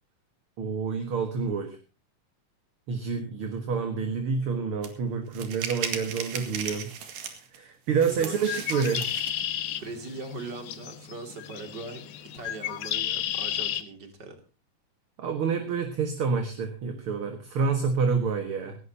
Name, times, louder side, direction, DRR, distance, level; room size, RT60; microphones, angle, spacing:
voice 1, 0.6-1.8 2.9-9.0 15.2-18.8, right 5 dB, 50° right, 5 dB, 2.1 m, -28 dB
sound 1, 4.8-4.9 5.3-7.6 8.0-9.4, right 7 dB, 80° right, 3.6 m, -36 dB
voice 2, 8.0-8.6 9.8-12.1 12.3-14.4, right 3 dB, 35° right, 5 dB, 3.0 m, -40 dB
Bird, 8.3-13.8, left 11 dB, 75° left, 2.5 m, -33 dB
18.5 x 17.0 x 2.9 m, 0.32 s
omnidirectional pair, 3.8 m